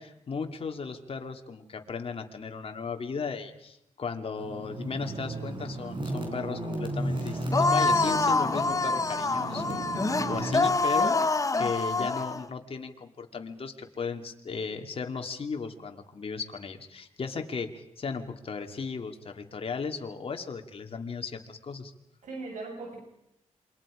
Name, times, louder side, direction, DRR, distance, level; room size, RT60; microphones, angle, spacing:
voice 1, 0.0-21.9, left 5 dB, 50° left, 5 dB, 2.5 m, -36 dB
sound 1, 4.4-10.7, right 1 dB, 40° right, 4.9 m, -34 dB
sound 2, 7.5-12.4, left 3 dB, 25° left, 1.1 m, -26 dB
voice 2, 9.9-10.3 22.2-23.1, right 3 dB, 80° right, 0 dB, 6.1 m, -40 dB
27.5 x 24.5 x 5.1 m, 0.81 s
cardioid pair, 90°, 13 cm